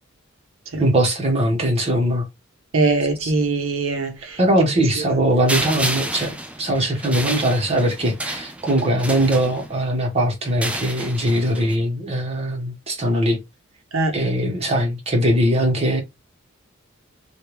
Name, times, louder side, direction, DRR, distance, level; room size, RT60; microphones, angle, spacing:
voice 1, 0.8-2.2 3.2-3.3 4.4-13.4 14.1-16.0, right 1 dB, 30° right, 1.1 m, -21 dB
voice 2, 2.7-4.4 5.0-5.2 13.9-14.1, right 3 dB, 75° right, 0.8 m, -22 dB
sound 1, 5.5-9.9 10.5-11.8, right 1 dB, 5° right, 0.3 m, -30 dB
3.4 x 2.3 x 3.0 m
head